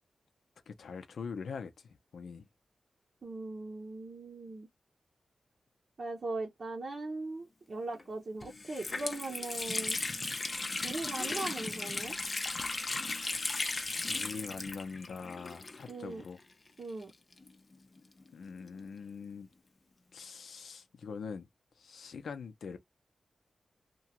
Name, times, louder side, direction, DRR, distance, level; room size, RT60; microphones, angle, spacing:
voice 1, 0.7-2.5 13.9-16.4 18.3-19.5 20.1-21.5 21.8-22.8, left 5 dB, 90° left, 0.7 m, -43 dB
voice 2, 3.2-4.7 6.0-10.0 10.8-12.2 15.9-16.2 16.8-17.1, right 2 dB, 45° right, 0.7 m, -39 dB
Water tap faucet, 7.9-8.0 8.4-16.1 16.4-16.5 17.3-18.9, left 3 dB, 35° left, 0.6 m, -36 dB
2.9 x 2.3 x 2.9 m
wide cardioid pair, 155°, 0 cm